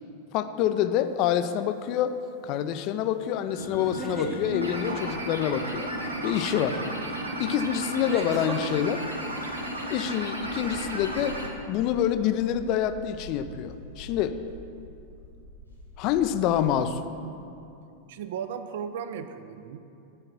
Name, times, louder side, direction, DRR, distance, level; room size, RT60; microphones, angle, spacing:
voice 1, 0.3-2.1 2.4-5.9 6.2-6.8 7.4-9.1 9.9-11.4 11.7-14.4 16.0-17.0, left 10 dB, 40° left, 11 dB, 0.4 m, -26 dB
sound 1, 1.2-1.6 3.8-4.4 6.7-6.8 8.1-8.6, right 4 dB, 25° right, 0.9 m, -36 dB
sound 2, 3.5-11.5, equal, 80° right, 0.8 m, -33 dB
sound 3, 10.4-16.8, left 1 dB, 85° left, 1.8 m, -46 dB
voice 2, 18.1-19.8, right 7 dB, 55° right, 10 dB, 0.4 m, -36 dB
7.6 x 4.8 x 5.9 m, 2.6 s
figure-of-eight pair, 90°, 0 cm